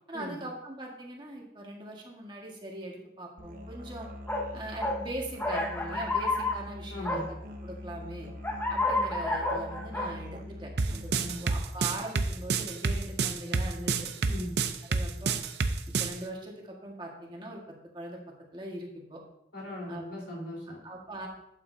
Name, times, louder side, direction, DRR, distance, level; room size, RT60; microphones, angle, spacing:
voice 1, 0.1-4.1 4.5-7.4 7.6-8.3 8.7-11.1 11.4-14.1 14.9-15.3 16.0-18.2 18.5-19.2 19.9-20.0 20.8-21.3, right 1 dB, 25° right, -1 dB, 1.6 m, -41 dB
Musical instrument, 3.4-11.3, left 1 dB, 45° right, 1.0 m, -43 dB
sound 1, 4.3-4.5 4.8-5.0 5.4-6.6 7.0-7.2 8.4-10.1, left 2 dB, 10° left, 1.0 m, -29 dB
voice 2, 6.9-7.3 11.1-11.5 14.3-14.5 19.5-20.8, left 1 dB, 75° left, -3 dB, 3.9 m, -39 dB
sound 2, 10.8-16.1, right 4 dB, 65° right, 0.6 m, -28 dB
11.5 x 8.4 x 2.7 m, 0.79 s
head